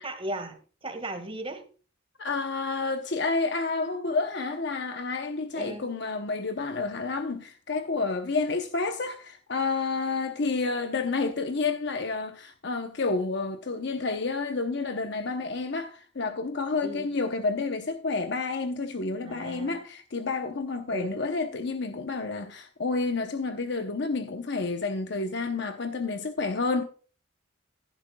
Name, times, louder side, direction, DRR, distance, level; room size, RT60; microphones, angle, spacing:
voice 1, 0.0-1.7 5.5-5.9 16.8-17.1 19.2-19.7 20.9-21.1, right 1 dB, 30° right, 1.7 m, -36 dB
voice 2, 2.2-26.8, left 3 dB, 65° left, 0.8 m, -30 dB
15.0 x 11.0 x 2.3 m
head